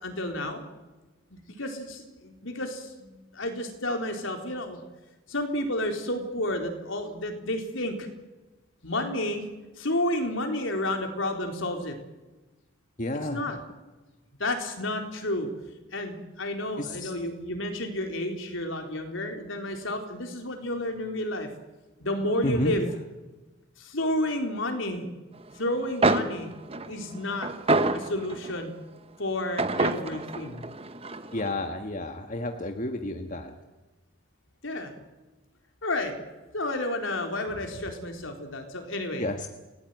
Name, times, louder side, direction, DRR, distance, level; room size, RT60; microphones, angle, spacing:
voice 1, 0.0-0.6 1.3-4.8 5.3-8.1 8.8-9.4 9.8-12.0 13.3-13.6 14.4-15.5 15.9-21.5 22.0-22.9 23.8-25.1 25.6-26.5 26.9-27.5 27.9-28.7 29.2-30.6 34.6-34.9 35.8-36.1 36.5-39.3, left 1 dB, 70° left, 4 dB, 4.1 m, -31 dB
voice 2, 13.0-13.4 16.8-17.1 22.4-22.9 31.3-33.5 39.2-39.5, left 1 dB, 40° left, 5 dB, 1.6 m, -31 dB
sound 1, 25.7-25.8 26.0-28.6 29.6-31.5, right 2 dB, 30° right, 1.1 m, -27 dB
28.5 x 17.5 x 9.3 m, 1.2 s
head